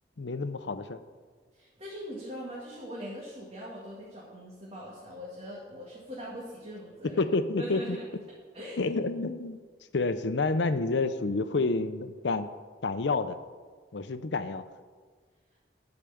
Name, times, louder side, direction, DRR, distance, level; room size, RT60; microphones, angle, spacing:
voice 1, 0.2-1.0 7.2-8.0 8.8-9.6 9.9-12.5 12.8-13.4 13.9-14.6, left 3 dB, 80° left, 11 dB, 0.6 m, -29 dB
voice 2, 1.5-7.2 7.6-8.1 8.5-8.8, equal, 35° right, -5 dB, 1.9 m, -41 dB
12.0 x 5.0 x 7.0 m, 1.5 s
head